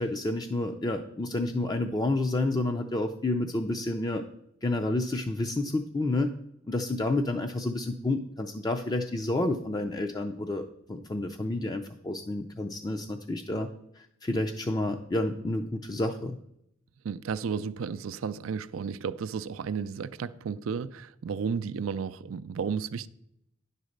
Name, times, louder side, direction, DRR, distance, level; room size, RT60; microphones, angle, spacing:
voice 1, 0.0-4.2 4.6-6.3 6.7-10.6 10.9-13.7 14.0-16.4, left 2 dB, 20° left, 0.4 m, -29 dB
voice 2, 17.0-23.1, right 6 dB, 90° right, 0.4 m, -33 dB
10.0 x 4.1 x 6.5 m
head